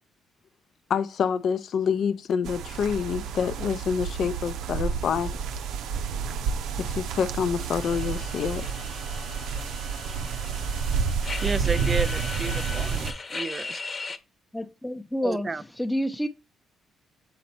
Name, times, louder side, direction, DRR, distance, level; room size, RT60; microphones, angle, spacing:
voice 1, 0.9-5.3 6.8-8.6, left 7 dB, 65° left, 0.5 m, -27 dB
sound 1, 2.4-13.1, right 6 dB, 85° right, 0.6 m, -30 dB
sound 2, 7.8-14.2, left 3 dB, 40° left, 1.0 m, -38 dB
voice 2, 11.4-13.8 15.2-15.6, right 3 dB, 30° right, 0.5 m, -31 dB
voice 3, 14.5-15.5 15.8-16.3, equal, 5° left, 0.7 m, -28 dB
7.7 x 4.1 x 4.3 m
cardioid pair, 90°, 0 cm